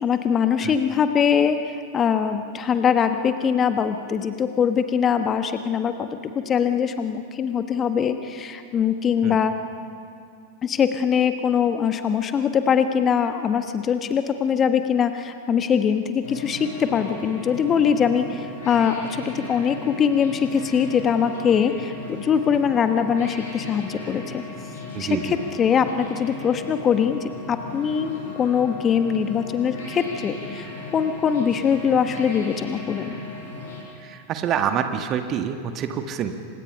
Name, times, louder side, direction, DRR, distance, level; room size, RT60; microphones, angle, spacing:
voice 1, 0.0-9.5 10.6-24.4 25.0-30.7 30.9-33.2, left 7 dB, 25° left, 8 dB, 1.3 m, -22 dB
sound 1, 16.2-33.8, left 3 dB, 60° left, 7.3 m, -37 dB
voice 2, 24.9-25.4 34.0-36.3, right 8 dB, 30° right, 7 dB, 1.7 m, -26 dB
28.5 x 25.5 x 5.7 m, 2.3 s
figure-of-eight pair, 90°, 0 cm